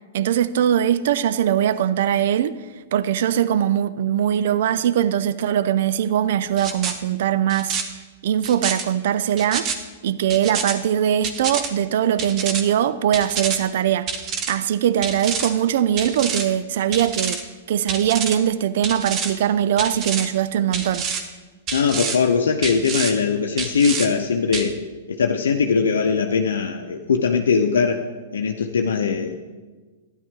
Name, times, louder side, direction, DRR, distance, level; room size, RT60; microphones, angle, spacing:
voice 1, 0.1-2.6 2.9-7.8 8.2-9.7 10.0-14.2 14.5-17.4 17.7-21.1, right 10 dB, 65° right, 0.4 m, -21 dB
sound 1, 6.6-6.9 7.5-7.8 8.4-8.8 9.4-9.8 10.3-10.7 11.2-11.7 12.2-12.6 13.1-13.6 14.1-14.5 15.0-15.5 16.0-16.5 16.9-17.4 17.9-18.4 18.8-19.3 19.8-20.3 20.7-21.2 21.7-22.2 22.6-23.1 23.6-24.1 24.5-24.7, right 6 dB, 35° right, 1.2 m, -27 dB
voice 2, 21.7-24.8 25.1-28.0 28.3-29.3, left 5 dB, 80° left, 0.6 m, -20 dB
12.0 x 10.0 x 3.7 m
hypercardioid pair, 115°, 0 cm